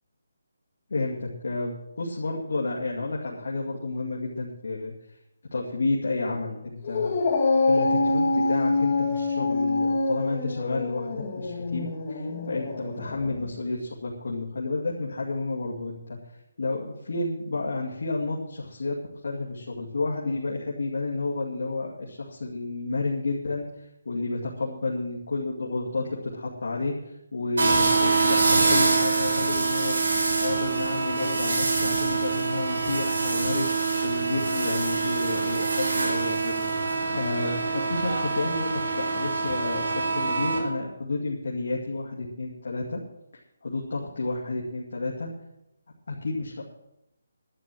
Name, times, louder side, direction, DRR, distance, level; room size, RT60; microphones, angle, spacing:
voice 1, 0.9-4.9 5.5-7.2 7.7-16.2 16.6-19.0 19.2-30.0 30.4-33.7 34.0-43.0 43.6-45.3 46.1-46.6, left 3 dB, 65° left, -4 dB, 2.3 m, -31 dB
Dog, 6.8-13.5, left 3 dB, 30° left, 1.7 m, -25 dB
sound 1, 27.6-40.6, right 4 dB, 70° right, 6.4 m, -25 dB
11.5 x 8.7 x 7.7 m, 0.86 s
hypercardioid pair, 175°, 0 cm